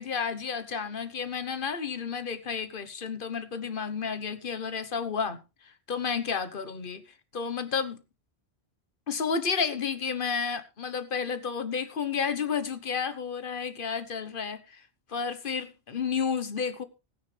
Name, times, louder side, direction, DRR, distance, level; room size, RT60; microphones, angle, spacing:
voice 1, 0.0-5.4 5.9-7.0 7.3-8.0 9.1-14.8 15.1-16.8, left 6 dB, 55° left, 1.3 m, -31 dB
16.5 x 9.5 x 3.3 m
omnidirectional pair, 1.1 m